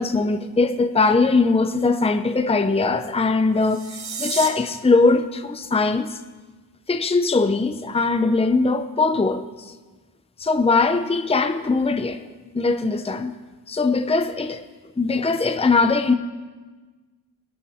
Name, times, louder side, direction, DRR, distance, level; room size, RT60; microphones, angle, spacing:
voice 1, 0.0-6.2 6.9-9.7 10.4-12.3 12.5-13.4 13.7-14.6 15.0-16.1, left 3 dB, 15° left, 0.7 m, -21 dB
sound 1, 3.5-4.5, right 5 dB, 85° right, 1.5 m, -31 dB
20.0 x 11.5 x 3.6 m
cardioid pair, 70°, 37 cm